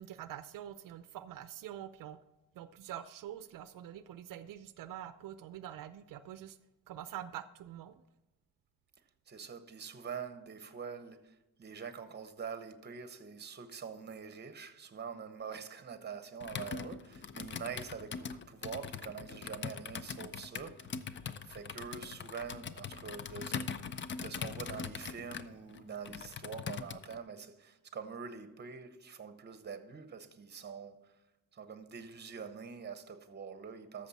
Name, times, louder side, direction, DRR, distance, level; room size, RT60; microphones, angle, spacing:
voice 1, 0.0-2.2 2.6-6.6 6.9-8.0, right 11 dB, 80° right, 0.5 m, -45 dB
voice 2, 9.3-21.0 21.4-31.1 31.5-34.1, right 6 dB, 30° right, 0.9 m, -45 dB
Computer keyboard, 16.4-27.2, left 6 dB, 35° left, 0.5 m, -42 dB
13.5 x 6.6 x 4.1 m
cardioid pair, 140°, 32 cm